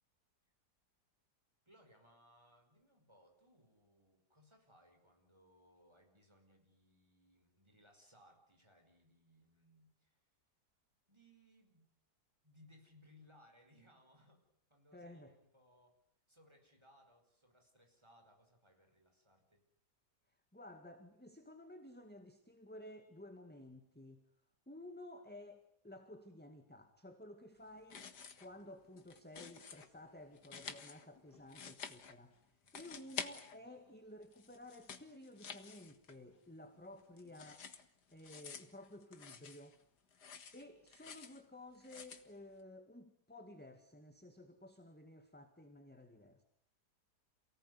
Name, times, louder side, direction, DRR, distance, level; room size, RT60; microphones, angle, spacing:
voice 1, 1.7-10.2 11.1-11.9 12.4-14.4 14.7-16.0 16.3-19.6 32.6-33.1, left 1 dB, 15° right, 4 dB, 5.4 m, -67 dB
voice 2, 14.9-15.4 20.5-24.2 24.7-28.1 28.4-32.4 32.7-37.7 38.1-39.8 40.2-46.4, left 1 dB, 5° left, 6 dB, 1.9 m, -54 dB
sound 1, 27.8-28.6 28.8-29.9 30.3-32.4 32.7-33.9 34.2-36.4 36.7-39.8 40.1-41.4 41.8-42.3, left 6 dB, 75° left, 2.2 m, -50 dB
28.5 x 18.5 x 9.6 m, 0.68 s
omnidirectional pair, 1.8 m